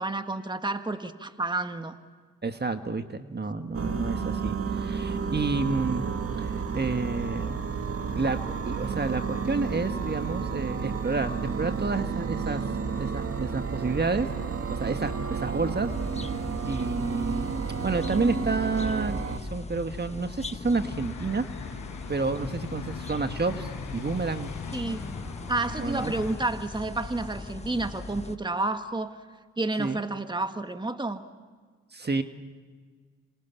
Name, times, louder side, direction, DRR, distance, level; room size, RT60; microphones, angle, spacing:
voice 1, 0.0-2.0 24.7-25.0 25.5-29.2 29.6-31.2, right 2 dB, 15° right, 8 dB, 1.7 m, -30 dB
voice 2, 2.4-6.0 6.4-7.7 8.2-8.4 8.6-12.6 13.0-14.3 14.7-15.9 16.6-17.5 17.8-21.5 22.1-24.5 25.8-26.1 29.8-30.0 31.9-32.2, right 3 dB, 35° right, 8 dB, 1.7 m, -29 dB
sound 1, 3.7-19.4, right 5 dB, 50° right, 2.0 m, -31 dB
Early Morning Sparrows, 15.9-28.4, left 3 dB, 20° left, 1.2 m, -40 dB
sound 2, 20.8-26.4, left 6 dB, 80° left, 4.1 m, -40 dB
27.0 x 27.0 x 7.2 m, 1.5 s
supercardioid pair, 50°, 30 cm